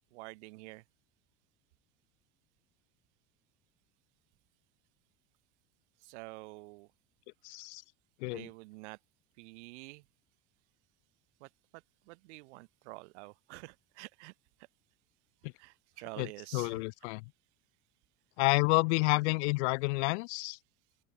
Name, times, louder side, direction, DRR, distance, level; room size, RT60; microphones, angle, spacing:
voice 1, 0.1-0.8 6.0-6.9 8.3-9.0 9.4-10.0 11.4-11.5 12.1-14.3 15.6-16.8, right 25 dB, 80° right, 2.7 m, -48 dB
voice 2, 7.4-7.8 8.2-8.5 16.2-17.2 18.4-20.6, left 28 dB, 75° left, 0.8 m, -29 dB
open air
supercardioid pair, 135°, 34 cm